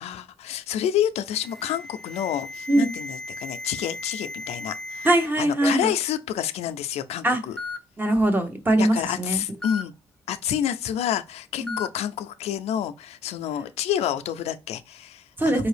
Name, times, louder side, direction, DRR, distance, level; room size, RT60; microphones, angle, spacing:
voice 1, 0.0-5.1 5.4-7.6 8.7-9.9 10.3-15.6, left 10 dB, 90° left, 0.4 m, -29 dB
Alarm, 1.3-5.3 5.6-6.0 6.9-7.0 7.6-7.8 9.6-9.8 11.7-11.9, left 2 dB, 5° left, 0.6 m, -36 dB
voice 2, 5.0-5.9 7.2-7.4 8.0-9.4 11.6-11.8 15.4-15.7, right 1 dB, 20° right, 1.0 m, -21 dB
4.7 x 2.6 x 3.3 m
cardioid pair, 95°, 11 cm